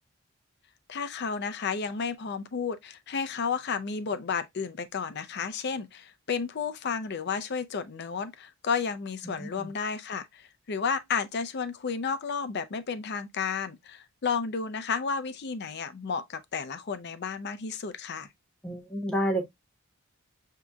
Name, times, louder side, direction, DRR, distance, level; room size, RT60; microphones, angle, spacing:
voice 1, 0.9-18.3, left 5 dB, 55° left, 0.5 m, -32 dB
voice 2, 9.2-9.7 18.6-19.4, equal, 5° left, 1.0 m, -30 dB
6.0 x 2.8 x 2.3 m
head